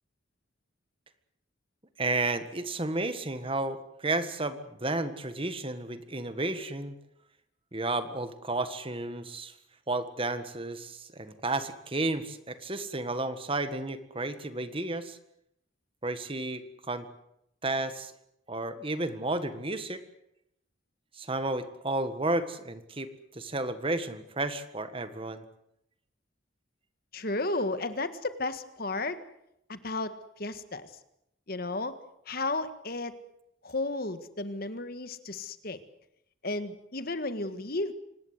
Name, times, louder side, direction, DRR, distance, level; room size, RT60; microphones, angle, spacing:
voice 1, 2.0-6.9 7.7-9.5 9.9-15.2 16.0-17.1 17.6-18.1 18.5-20.0 21.2-25.4, right 2 dB, 30° right, 11 dB, 1.6 m, -32 dB
voice 2, 27.1-29.2 29.7-30.9 31.5-32.0 32.3-33.2 33.6-35.8 36.4-37.9, left 2 dB, 50° left, 11 dB, 1.7 m, -33 dB
25.5 x 19.5 x 8.1 m, 0.78 s
head